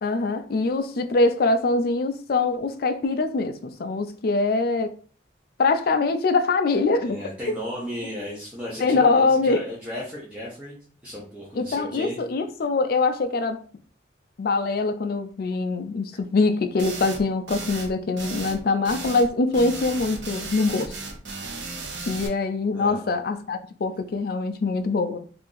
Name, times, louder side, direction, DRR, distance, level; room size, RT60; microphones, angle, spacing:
voice 1, 0.0-4.9 5.6-7.2 8.8-9.6 11.6-13.6 14.4-20.9 22.1-25.2, left 3 dB, 50° left, 0.4 m, -23 dB
voice 2, 7.0-10.8 11.0-12.2 22.7-23.0, equal, 5° right, 0.7 m, -35 dB
sound 1, 16.8-17.2 17.5-17.9 18.2-18.6 18.8-19.3 19.5-22.3, right 3 dB, 70° right, 0.7 m, -35 dB
2.8 x 2.5 x 3.8 m
head